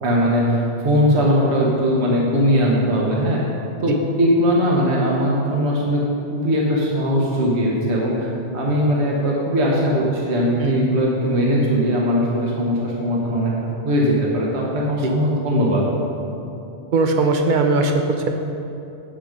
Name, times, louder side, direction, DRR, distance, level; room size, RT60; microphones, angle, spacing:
voice 1, 0.0-3.4 3.8-6.0 6.3-8.3 8.5-15.8, equal, 65° right, -3 dB, 1.5 m, -20 dB
voice 2, 16.9-18.3, right 3 dB, 45° right, 4 dB, 0.9 m, -19 dB
8.9 x 7.0 x 5.2 m, 2.9 s
omnidirectional pair, 1.2 m